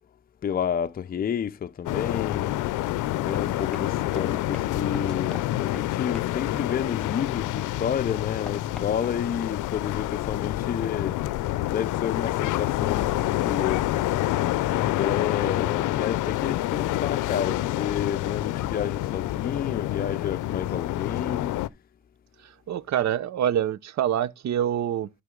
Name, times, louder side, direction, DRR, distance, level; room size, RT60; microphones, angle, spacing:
voice 1, 0.4-2.6 3.1-11.2 11.7-14.3 14.7-21.5, left 8 dB, 30° left, 0.5 m, -30 dB
sound 1, 1.9-21.7, left 15 dB, 85° left, 0.5 m, -27 dB
Run, 3.2-7.6 8.0-9.9, left 1 dB, 5° left, 1.7 m, -46 dB
voice 2, 22.4-25.1, right 10 dB, 65° right, 0.8 m, -26 dB
11.0 x 5.8 x 3.7 m
cardioid pair, 90°, 30 cm